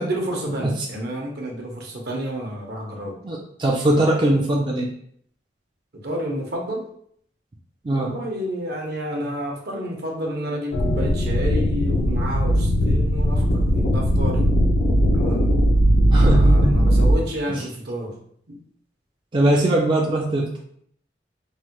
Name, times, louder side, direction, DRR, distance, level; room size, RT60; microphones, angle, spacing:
voice 1, 0.0-3.2 6.0-6.9 7.9-14.5 15.1-15.5 16.2-18.2 18.5-18.6, right 1 dB, 65° right, 0 dB, 0.8 m, -30 dB
voice 2, 3.2-4.9 7.8-8.1 16.1-16.7 17.5-17.6 19.3-20.5, right 1 dB, 30° right, -2 dB, 0.4 m, -20 dB
sound 1, 10.7-17.1, equal, 80° left, 0.6 m, -18 dB
3.1 x 2.1 x 2.9 m, 0.65 s
head